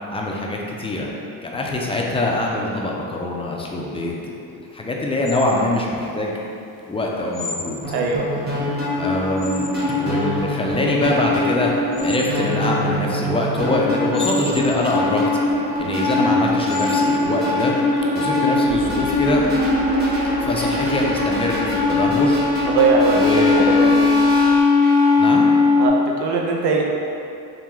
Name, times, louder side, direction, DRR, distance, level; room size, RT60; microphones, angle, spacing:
voice 1, 0.1-1.1 1.4-4.2 4.5-6.3 6.9-7.8 9.0-9.7 10.0-11.7 12.0-15.2 15.8-17.7 18.1-19.4 20.4-22.4 23.1-23.6 25.2-25.5, left 2 dB, 15° left, -2 dB, 0.5 m, -23 dB
sound 1, 5.3-18.7, left 2 dB, 50° left, 0.8 m, -37 dB
sound 2, 7.8-25.9, left 3 dB, 25° right, 1.1 m, -20 dB
voice 2, 7.9-8.3 22.6-23.2 23.6-24.1 25.8-26.8, right 4 dB, 70° right, 0 dB, 0.7 m, -20 dB
sound 3, 18.7-24.6, left 6 dB, 50° right, 0.9 m, -40 dB
3.8 x 3.3 x 3.1 m, 2.7 s
cardioid pair, 95°, 40 cm